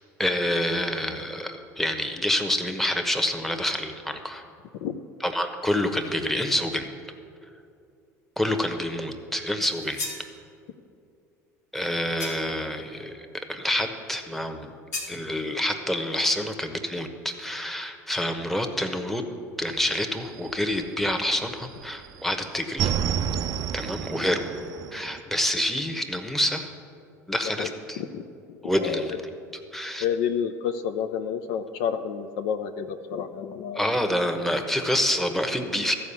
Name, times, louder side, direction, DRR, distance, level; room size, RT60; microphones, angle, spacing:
voice 1, 0.2-4.4 5.2-6.9 8.4-10.0 11.7-14.7 15.1-19.2 19.6-22.9 23.7-24.5 24.9-26.7 27.3-28.0 28.6-29.2 29.7-30.1 33.7-36.0, left 1 dB, 5° left, 6 dB, 1.0 m, -27 dB
sound 1, 9.7-10.3 12.2-12.6 14.9-15.2, left 3 dB, 80° left, 1.8 m, -35 dB
sound 2, 19.7-21.4 21.7-25.2, right 8 dB, 45° right, 0.4 m, -30 dB
voice 2, 28.7-29.1 30.0-33.9 34.2-34.3, left 8 dB, 65° left, 8 dB, 0.5 m, -29 dB
13.5 x 4.7 x 7.0 m, 2.4 s
hypercardioid pair, 75°, 9 cm